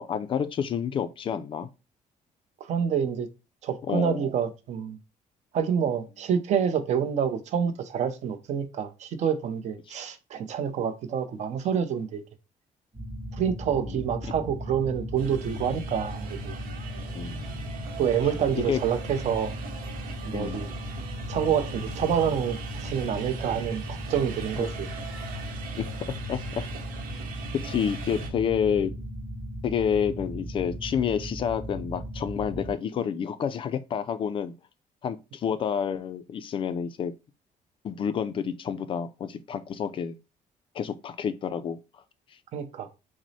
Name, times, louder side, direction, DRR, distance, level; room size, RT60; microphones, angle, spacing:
voice 1, 0.0-1.7 3.9-4.3 9.9-10.0 13.8-14.0 17.1-17.4 18.7-18.8 20.3-20.7 24.6-24.7 25.7-25.9 26.3-26.6 27.6-28.9 29.6-34.5 35.0-37.1 37.8-40.2 40.7-41.8, left 7 dB, 35° left, 0.4 m, -29 dB
voice 2, 2.6-3.3 3.6-5.0 5.5-12.2 13.3-16.6 18.0-19.6 20.2-20.7 21.3-24.9 42.5-42.9, right 8 dB, 50° right, 0.7 m, -27 dB
sound 1, 12.9-32.8, equal, 35° right, 2.8 m, -37 dB
sound 2, 15.2-28.3, right 3 dB, 85° right, 1.0 m, -40 dB
6.0 x 2.0 x 4.1 m
cardioid pair, 170°, 15 cm